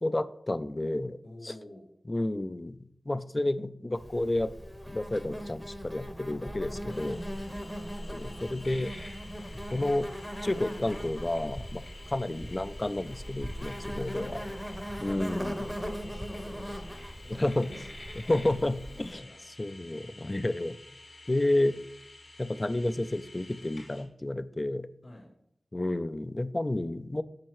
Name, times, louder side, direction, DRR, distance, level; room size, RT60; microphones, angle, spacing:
voice 1, 0.0-1.2 1.4-1.5 2.1-2.8 3.1-4.5 4.9-7.2 8.1-8.9 9.7-10.1 10.4-11.8 12.1-14.3 15.0-15.6 17.3-17.7 18.3-19.3 19.6-20.8 21.3-21.8 22.4-24.9 25.7-27.2, left 1 dB, 30° left, 14 dB, 0.3 m, -30 dB
voice 2, 1.2-1.9 6.9-7.7 14.1-14.6 14.9-18.5 19.1-19.4 25.0-25.3, left 1 dB, 60° left, -7 dB, 2.8 m, -50 dB
Insect, 3.9-19.1, equal, 5° left, 0.7 m, -39 dB
sound 1, 6.9-24.0, left 2 dB, 80° left, 2.5 m, -50 dB
7.5 x 5.4 x 3.0 m, 0.75 s
wide cardioid pair, 55°, 0 cm